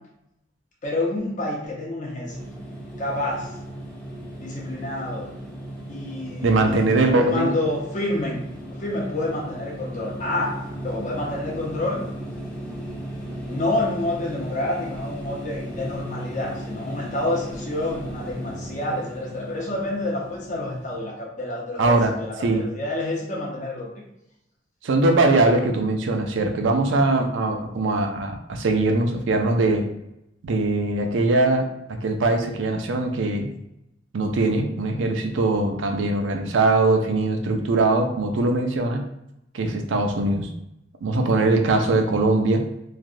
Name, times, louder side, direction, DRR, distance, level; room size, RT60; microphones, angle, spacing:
voice 1, 0.8-2.5 3.0-3.5 4.3-5.3 5.9-8.4 8.7-10.5 10.8-12.0 13.5-23.9, left 1 dB, 40° left, -3 dB, 0.9 m, -28 dB
sound 1, 2.3-21.0, right 1 dB, 5° left, 0.7 m, -36 dB
voice 2, 6.4-7.5 21.8-22.1 22.4-22.6 24.8-29.8 30.4-33.5 34.1-39.0 39.5-40.5 41.0-42.6, right 2 dB, 85° right, 5 dB, 0.4 m, -21 dB
3.2 x 2.4 x 2.5 m, 0.84 s
head